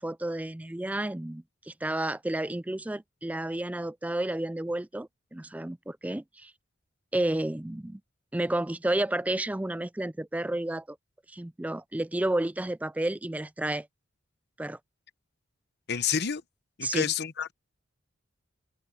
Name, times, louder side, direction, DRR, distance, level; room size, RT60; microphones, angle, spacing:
voice 1, 0.0-6.5 7.1-8.0 8.3-11.0 11.3-13.9 14.6-14.8 16.8-17.1, right 1 dB, 5° right, 0.3 m, -31 dB
voice 2, 15.9-16.4 16.8-17.5, left 7 dB, 55° left, 0.9 m, -28 dB
head